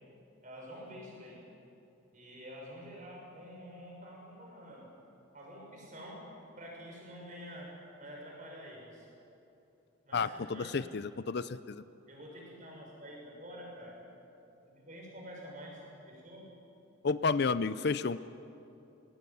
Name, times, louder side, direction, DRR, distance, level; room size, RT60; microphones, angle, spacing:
voice 1, 0.4-1.4 2.1-4.9 5.3-6.2 6.6-9.1 10.0-10.8 12.1-14.0 14.6-16.4, equal, 35° right, -2 dB, 6.7 m, -48 dB
voice 2, 10.1-11.8 17.0-18.2, left 4 dB, 50° left, 15 dB, 0.5 m, -31 dB
21.0 x 18.0 x 9.4 m, 2.9 s
head